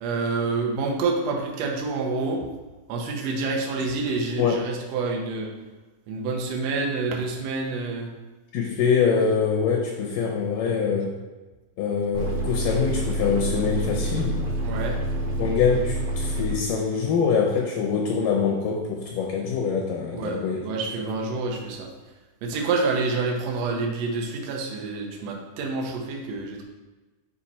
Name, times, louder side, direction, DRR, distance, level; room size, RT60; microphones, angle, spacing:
voice 1, 0.0-2.5 2.9-5.5 6.1-8.1 14.6-15.0 20.1-21.9 22.4-26.6, right 3 dB, 85° right, 0 dB, 1.5 m, -28 dB
voice 2, 8.5-11.1 11.8-14.4 15.4-20.6, left 6 dB, 75° left, 0 dB, 2.2 m, -24 dB
sound 1, 12.1-16.5, right 1 dB, 60° right, 2.5 m, -27 dB
5.8 x 5.2 x 4.2 m, 1.2 s
omnidirectional pair, 4.4 m